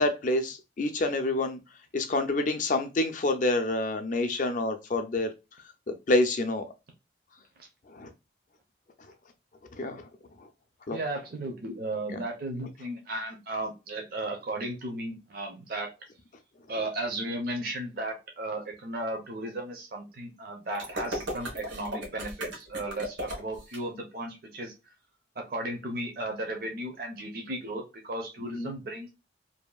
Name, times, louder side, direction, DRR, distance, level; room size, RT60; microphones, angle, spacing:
voice 1, 0.0-1.6 1.9-5.3 5.9-6.7 7.9-8.1 9.7-10.1 10.4-10.5 10.9-11.0 28.5-28.7, left 2 dB, 45° left, 7 dB, 0.4 m, -27 dB
voice 2, 10.9-15.9 16.7-24.7 25.4-29.1, right 1 dB, 50° right, 2 dB, 0.6 m, -35 dB
sound 1, 20.7-23.8, equal, 80° right, 1.1 m, -36 dB
2.7 x 2.5 x 2.2 m, 0.26 s
head